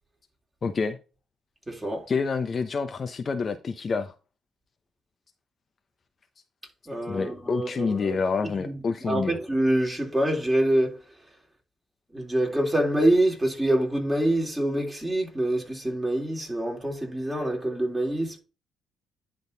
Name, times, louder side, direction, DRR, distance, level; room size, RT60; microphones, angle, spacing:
voice 1, 0.6-1.0 2.1-4.1 7.1-9.4, left 5 dB, 40° left, 0.9 m, -28 dB
voice 2, 1.7-2.1 6.9-8.2 8.6-8.8 9.1-11.0 12.1-18.4, right 1 dB, 10° right, 3.5 m, -25 dB
10.5 x 3.9 x 4.0 m
cardioid pair, 90°, 0 cm